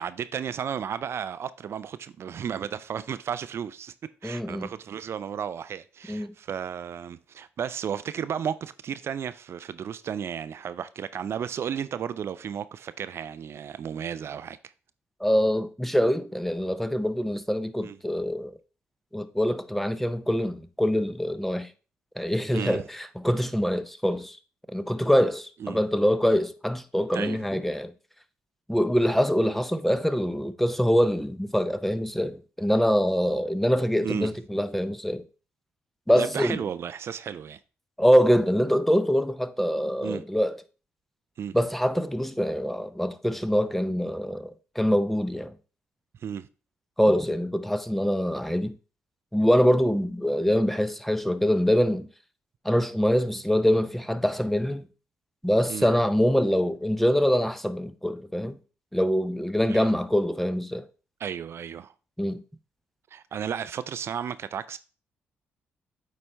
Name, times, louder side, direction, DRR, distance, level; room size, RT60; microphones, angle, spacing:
voice 1, 0.0-3.9 4.2-14.6 17.8-18.0 22.5-22.8 25.6-25.8 27.1-27.4 34.0-34.3 36.2-37.6 40.0-40.2 41.4-41.5 46.2-46.5 55.7-55.9 59.7-59.9 61.2-61.9 63.1-64.8, right 8 dB, 55° right, 0.3 m, -33 dB
voice 2, 4.2-4.7 6.1-6.3 15.2-18.5 19.1-21.7 22.2-24.4 24.7-27.9 28.7-35.2 36.1-36.6 38.0-40.6 41.5-45.5 47.0-48.8 49.3-52.1 52.6-54.8 55.4-58.6 58.9-60.9 62.2-62.4, equal, 5° left, 0.6 m, -24 dB
8.5 x 4.2 x 3.3 m
hypercardioid pair, 50°, 5 cm